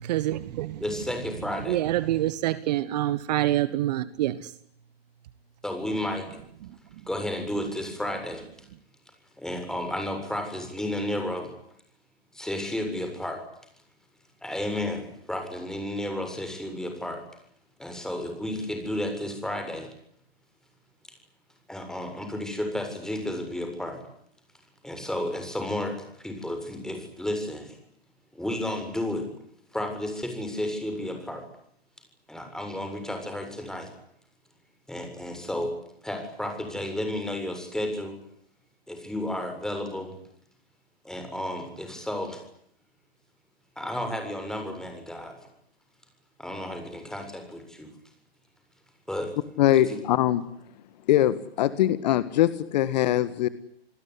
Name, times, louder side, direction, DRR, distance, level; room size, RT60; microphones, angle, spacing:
voice 1, 0.1-0.8 1.7-4.3, right 14 dB, 40° right, 1.3 m, -26 dB
voice 2, 0.8-1.8 5.6-6.3 7.1-8.7 9.4-11.5 12.3-13.4 14.4-17.2 17.8-19.9 21.7-24.0 24.8-27.8 28.3-29.3 29.7-31.4 32.3-33.9 34.9-35.7 36.0-38.1 38.9-40.1 41.0-42.4 43.8-45.3 46.4-47.9 49.1-49.3 49.9-50.0, left 1 dB, ahead, 7.4 m, -32 dB
voice 3, 49.6-50.4 51.1-53.5, left 13 dB, 45° left, 1.7 m, -22 dB
29.0 x 20.0 x 9.9 m
figure-of-eight pair, 120°, 31 cm